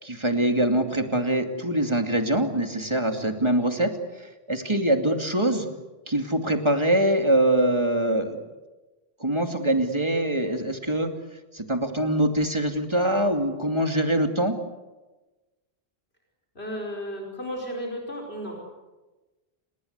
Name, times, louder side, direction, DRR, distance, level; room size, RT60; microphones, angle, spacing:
voice 1, 0.0-5.7 6.1-8.4 9.2-11.1 11.5-14.5, right 1 dB, 25° right, 5 dB, 2.6 m, -24 dB
voice 2, 16.6-18.6, equal, 75° left, 0 dB, 5.4 m, -34 dB
29.5 x 20.5 x 8.2 m, 1.1 s
omnidirectional pair, 1.1 m